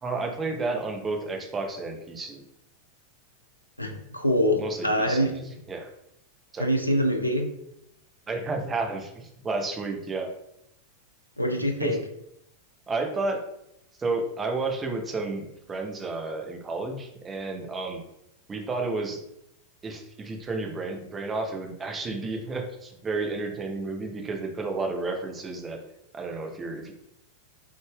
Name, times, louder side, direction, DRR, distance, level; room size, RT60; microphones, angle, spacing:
voice 1, 0.0-2.4 4.6-5.4 5.7-5.9 6.5-6.7 8.3-10.3 11.8-12.0 12.9-13.4 14.0-18.0 18.5-19.2 19.8-25.8 26.1-26.9, right 3 dB, 20° right, 3 dB, 0.7 m, -31 dB
voice 2, 3.8-5.3 6.6-7.5 11.4-12.0, equal, 85° left, 4 dB, 0.5 m, -24 dB
3.9 x 3.6 x 2.3 m, 0.79 s
figure-of-eight pair, 90°, 0 cm